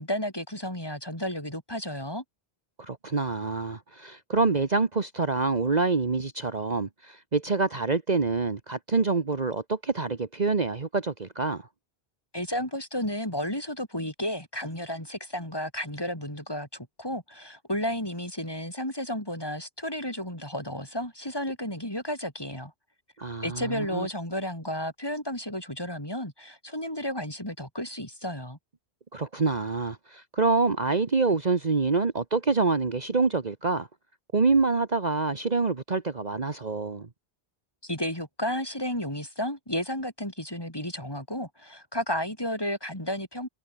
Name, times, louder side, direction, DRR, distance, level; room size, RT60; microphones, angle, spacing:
voice 1, 0.0-2.2 12.3-22.7 23.4-28.6 37.8-43.5, left 1 dB, 20° left, 5.9 m, -32 dB
voice 2, 2.8-11.7 23.2-24.1 29.1-33.9 34.3-37.1, right 4 dB, 40° right, 1.4 m, -26 dB
omnidirectional pair, 1.1 m